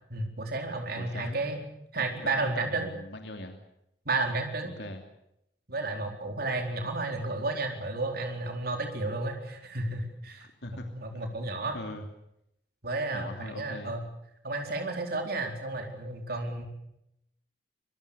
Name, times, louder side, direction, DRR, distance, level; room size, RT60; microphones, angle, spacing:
voice 1, 0.1-1.7 1.9-2.9 4.1-4.7 5.7-10.5 10.9-11.8 12.8-14.0 14.4-16.7, right 2 dB, 60° right, 3 dB, 4.2 m, -32 dB
voice 2, 0.9-1.4 2.0-3.6 4.8-5.0 10.4-10.9 11.7-12.0 13.1-14.0, left 1 dB, 70° left, 4 dB, 2.9 m, -41 dB
26.0 x 22.5 x 7.0 m, 0.80 s
head